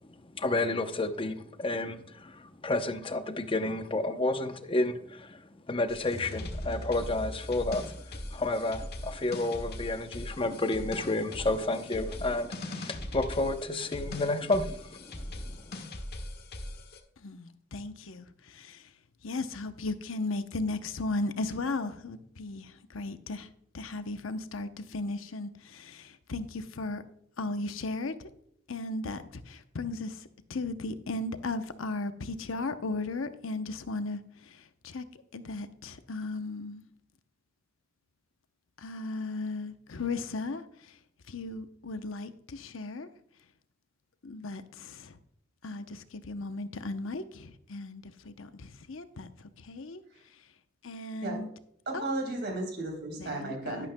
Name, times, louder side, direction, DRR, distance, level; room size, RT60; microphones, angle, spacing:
voice 1, 0.3-15.7, left 2 dB, 25° left, 0.7 m, -31 dB
sound 1, 5.9-17.0, left 1 dB, 55° left, 1.3 m, -40 dB
voice 2, 17.2-18.8 19.2-23.5 23.7-27.0 27.4-28.3 28.7-35.0 35.3-36.8 38.8-40.6 41.3-43.1 44.2-45.1 45.6-49.3 49.6-50.0 50.8-51.5 51.9-52.1 53.2-53.9, left 2 dB, 90° left, 0.8 m, -36 dB
voice 3, 51.8-53.9, right 2 dB, 55° right, 3.4 m, -34 dB
11.5 x 11.5 x 2.2 m
head